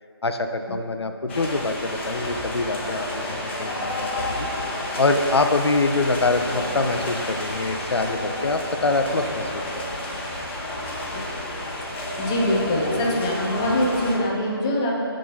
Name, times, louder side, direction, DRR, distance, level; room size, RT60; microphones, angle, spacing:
voice 1, 0.2-4.5 4.9-9.7 9.9-10.2, left 3 dB, 75° left, 7 dB, 0.6 m, -25 dB
sound 1, 1.3-14.2, left 1 dB, 25° left, 1.0 m, -30 dB
voice 2, 12.2-15.0, left 1 dB, 10° left, -4 dB, 0.4 m, -23 dB
11.0 x 3.8 x 4.0 m, 2.5 s
figure-of-eight pair, 160°, 13 cm